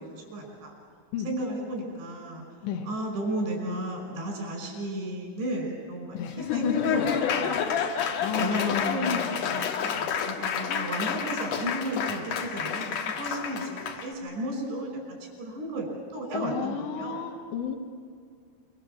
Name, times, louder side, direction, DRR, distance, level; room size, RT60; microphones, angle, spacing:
voice 1, 0.3-0.7 1.2-2.4 2.9-7.9 8.4-8.6 8.9-17.2, right 1 dB, 80° right, 2 dB, 7.9 m, -34 dB
Laughter / Applause, 6.2-14.1, left 7 dB, 60° left, 2.4 m, -29 dB
voice 2, 8.2-9.6 10.7-11.0 16.3-17.8, left 8 dB, 80° left, 3 dB, 3.6 m, -33 dB
25.5 x 24.0 x 7.7 m, 2.1 s
omnidirectional pair, 5.0 m